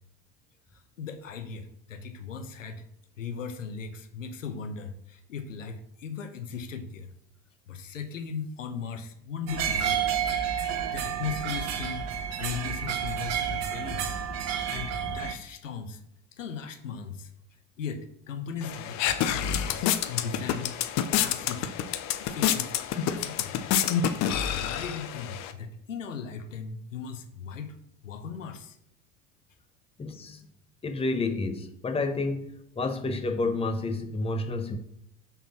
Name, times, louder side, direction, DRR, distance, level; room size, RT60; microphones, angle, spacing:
voice 1, 0.7-2.8 3.2-7.1 7.7-10.0 10.9-12.1 12.4-16.0 16.4-17.3 17.8-21.7 22.2-23.7 24.3-27.8 28.0-28.8, left 6 dB, 80° left, 8 dB, 1.0 m, -38 dB
sound 1, 9.5-15.3, right 8 dB, 45° right, 1.0 m, -30 dB
sound 2, 18.6-25.5, left 9 dB, 45° left, 0.8 m, -28 dB
voice 2, 30.0-30.5 30.8-34.8, left 3 dB, 15° left, 6 dB, 1.0 m, -30 dB
6.2 x 4.1 x 5.9 m, 0.77 s
figure-of-eight pair, 75°, 38 cm